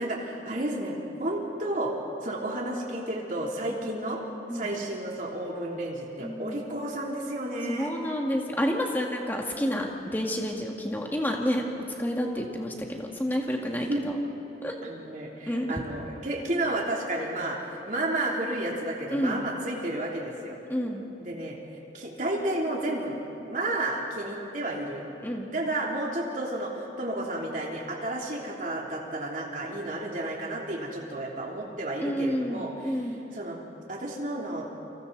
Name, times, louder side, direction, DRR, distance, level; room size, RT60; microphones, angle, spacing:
voice 1, 0.0-1.9 2.2-4.2 4.5-7.9 13.7-14.1 14.8-17.6 17.9-20.6 21.2-21.6 21.9-23.2 23.5-25.1 25.5-33.0 33.3-33.6 33.9-34.7, right 1 dB, 45° right, -2 dB, 3.2 m, -32 dB
voice 2, 6.2-6.6 7.7-11.6 12.0-14.1 14.6-14.7 15.5-15.8 19.1-19.5 20.7-21.1 25.2-25.5 32.0-33.2, equal, 10° left, 0 dB, 2.0 m, -29 dB
29.5 x 25.0 x 4.1 m, 2.8 s
head